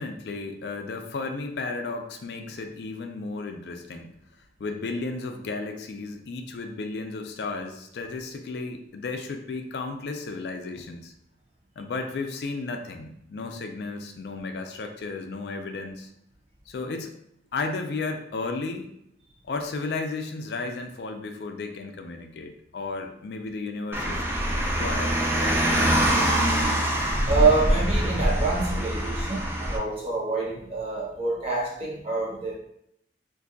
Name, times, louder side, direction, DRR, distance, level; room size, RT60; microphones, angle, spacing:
voice 1, 0.0-4.1 4.6-11.1 11.8-16.1 16.7-17.2 17.5-18.9 19.4-24.2 24.8-26.0, left 3 dB, 65° left, 5 dB, 0.4 m, -34 dB
Car, 23.9-29.8, equal, 15° right, 0.4 m, -24 dB
voice 2, 27.3-32.5, right 4 dB, 35° right, -4 dB, 0.9 m, -26 dB
2.5 x 2.3 x 3.8 m, 0.73 s
head